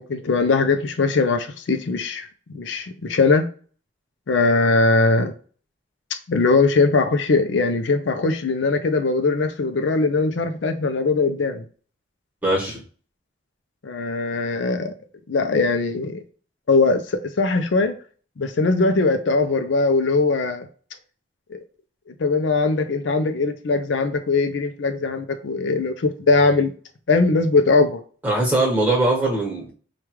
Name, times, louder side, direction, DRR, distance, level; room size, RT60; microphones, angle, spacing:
voice 1, 0.1-2.3 2.5-3.4 4.3-5.3 6.3-11.6 13.8-14.9 15.3-16.2 16.7-17.9 18.4-20.7 21.5-21.6 22.2-26.7 27.1-28.0, left 3 dB, 70° left, 0.5 m, -20 dB
voice 2, 12.4-12.8 28.2-29.7, right 2 dB, 10° right, 1.3 m, -21 dB
4.8 x 2.3 x 3.1 m
head